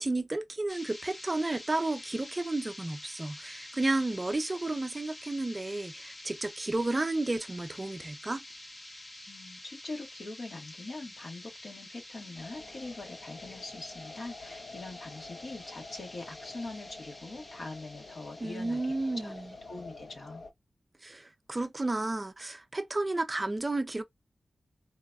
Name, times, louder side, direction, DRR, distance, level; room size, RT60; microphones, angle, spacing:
voice 1, 0.0-8.4 18.4-19.5 21.0-24.0, right 2 dB, 25° right, 0.4 m, -32 dB
sound 1, 0.7-20.1, left 1 dB, 35° left, 1.0 m, -48 dB
voice 2, 9.3-19.3 19.7-20.4, left 2 dB, 60° left, 1.4 m, -43 dB
sound 2, 12.4-20.5, left 3 dB, 80° left, 0.7 m, -48 dB
3.9 x 2.5 x 2.2 m
wide cardioid pair, 100°, 0 cm